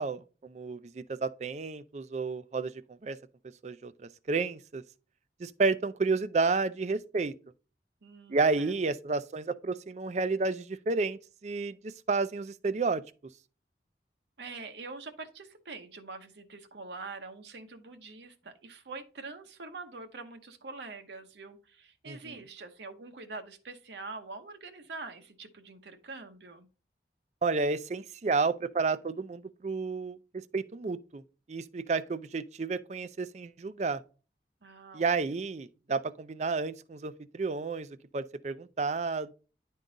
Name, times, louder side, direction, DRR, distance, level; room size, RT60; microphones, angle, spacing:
voice 1, 0.0-3.2 3.6-4.8 5.4-7.3 8.3-13.0 22.1-22.4 27.4-31.2 31.5-34.0 34.9-37.9 38.1-39.3, right 4 dB, 40° right, 0.4 m, -31 dB
voice 2, 8.0-8.7 14.4-26.7 34.6-35.3, right 3 dB, 75° right, 0.9 m, -45 dB
10.0 x 3.8 x 3.9 m
head